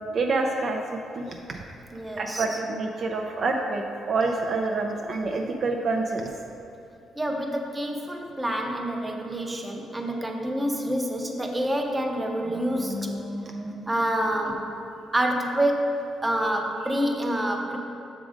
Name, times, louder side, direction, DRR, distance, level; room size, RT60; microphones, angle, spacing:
voice 1, 0.1-1.6 2.2-6.3, right 3 dB, 50° right, 2 dB, 0.4 m, -27 dB
voice 2, 1.9-2.4 7.2-14.7 15.1-17.8, right 1 dB, 15° right, 2 dB, 0.7 m, -27 dB
6.1 x 3.7 x 4.9 m, 2.7 s
cardioid pair, 90°, 0 cm